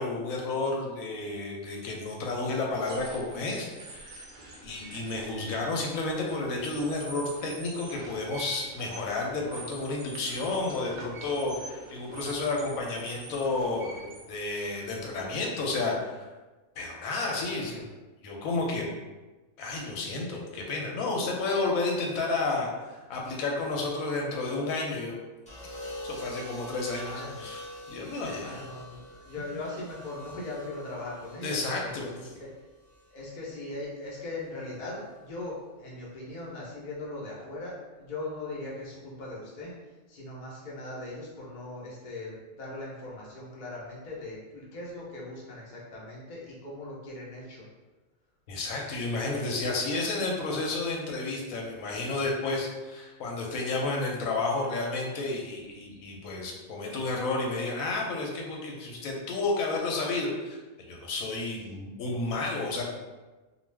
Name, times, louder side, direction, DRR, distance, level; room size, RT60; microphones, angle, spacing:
voice 1, 0.0-4.2 4.6-16.3 16.8-17.8 18.2-18.9 19.6-25.2 26.0-27.6 27.9-28.5 31.4-32.1 48.5-60.6 60.9-62.8, left 3 dB, 85° left, -1 dB, 1.0 m, -31 dB
sound 1, 2.7-15.4, right 3 dB, 65° right, 0.5 m, -46 dB
voice 2, 17.5-17.8 27.0-27.5 28.4-32.5 33.1-39.7 40.1-47.6, left 2 dB, 40° left, -5 dB, 0.7 m, -40 dB
sound 2, 25.5-33.6 34.8-35.2, left 1 dB, 10° left, 0.4 m, -45 dB
2.3 x 2.3 x 3.2 m, 1.2 s
omnidirectional pair, 1.4 m